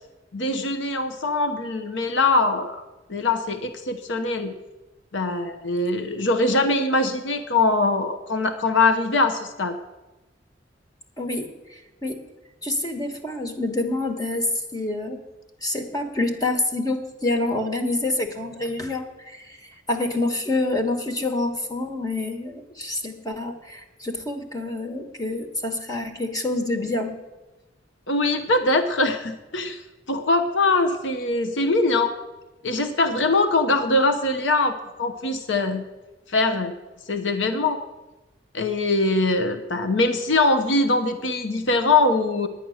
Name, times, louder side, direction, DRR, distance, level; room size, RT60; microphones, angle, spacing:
voice 1, 0.3-2.8 3.1-4.5 5.1-9.8 28.1-29.8 30.1-32.1 32.6-35.8 36.3-36.7 37.1-37.8 38.5-42.5, left 2 dB, 75° left, 7 dB, 0.9 m, -22 dB
voice 2, 11.2-12.2 12.6-14.5 14.7-15.2 15.6-19.6 19.9-27.1, left 2 dB, 20° left, 5 dB, 1.2 m, -27 dB
10.5 x 9.6 x 6.4 m, 1.1 s
head